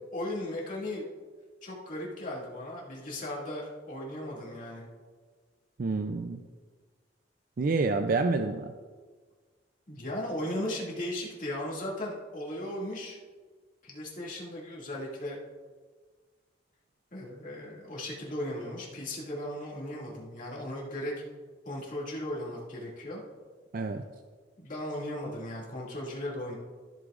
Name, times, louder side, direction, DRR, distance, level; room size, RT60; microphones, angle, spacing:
voice 1, 0.1-1.1 1.6-4.9 9.9-13.2 13.8-15.4 17.1-21.1 21.6-23.2 24.6-26.6, left 1 dB, 45° left, -4 dB, 2.3 m, -36 dB
voice 2, 5.8-6.4 7.6-8.7 23.7-24.0, right 3 dB, 50° right, 7 dB, 0.4 m, -28 dB
13.5 x 8.3 x 2.5 m, 1.5 s
head